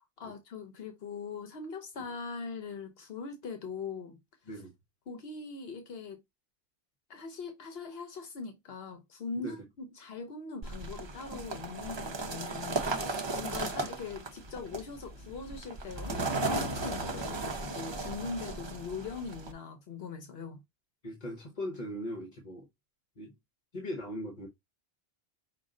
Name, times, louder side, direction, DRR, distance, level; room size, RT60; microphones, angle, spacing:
voice 1, 0.2-4.2 5.1-6.2 7.1-20.6, left 4 dB, 75° left, 1.0 m, -41 dB
sound 1, 10.6-19.5, right 2 dB, 30° right, 0.6 m, -36 dB
voice 2, 21.0-22.7 23.2-23.3 23.7-24.5, left 1 dB, 45° left, 1.1 m, -39 dB
5.2 x 2.5 x 3.7 m
omnidirectional pair, 1.0 m